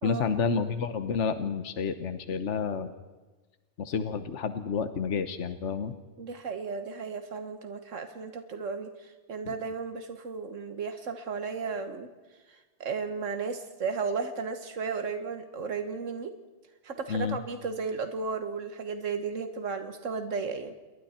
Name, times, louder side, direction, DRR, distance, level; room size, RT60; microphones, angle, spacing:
voice 1, 0.0-2.9 3.8-5.9 17.1-17.4, left 5 dB, 70° left, 10 dB, 1.3 m, -30 dB
voice 2, 6.2-12.1 12.5-16.3 16.8-20.7, right 5 dB, 90° right, 7 dB, 1.7 m, -34 dB
29.0 x 22.0 x 4.4 m, 1.2 s
omnidirectional pair, 1.3 m